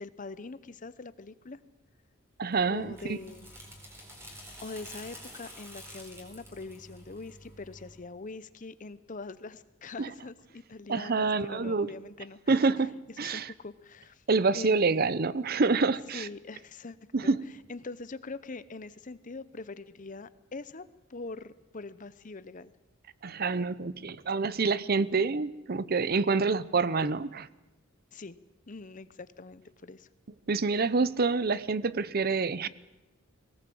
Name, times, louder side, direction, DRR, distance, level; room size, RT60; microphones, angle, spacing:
voice 1, 0.0-1.6 2.7-3.5 4.6-12.5 13.2-14.2 14.5-15.0 16.1-17.0 17.2-17.3 17.7-20.8 21.1-22.7 28.1-28.4 28.7-30.1, left 3 dB, 40° left, 15 dB, 0.8 m, -43 dB
voice 2, 2.4-3.2 10.0-10.1 10.9-11.9 12.5-13.5 14.3-16.3 17.1-17.4 23.2-27.5 30.5-32.7, right 4 dB, 45° right, 17 dB, 0.7 m, -27 dB
sound 1, 2.5-8.0, equal, 10° right, 4.4 m, -49 dB
20.5 x 18.5 x 7.8 m, 1.1 s
head